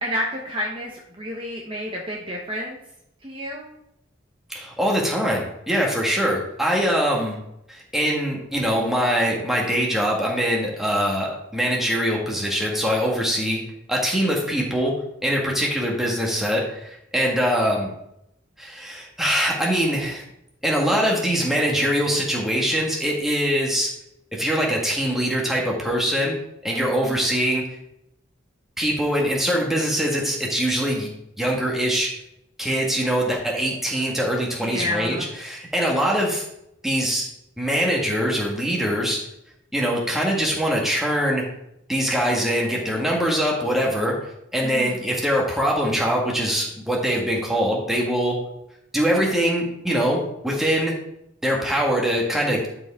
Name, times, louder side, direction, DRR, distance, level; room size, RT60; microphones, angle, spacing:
voice 1, 0.0-2.8 3.2-3.7 26.8-27.1 34.6-35.3 44.6-45.1, equal, 25° right, -2 dB, 1.0 m, -30 dB
voice 2, 4.5-7.4 7.7-13.6 13.9-14.9 15.2-17.9 18.6-20.2 20.6-23.9 24.3-26.4 26.6-27.6 28.8-31.1 31.4-32.1 32.6-36.4 36.8-37.3 37.6-39.2 39.7-41.4 41.9-44.2 44.5-48.4 48.9-51.0 51.4-52.7, equal, ahead, -3 dB, 1.7 m, -23 dB
12.0 x 5.0 x 3.6 m, 0.80 s
head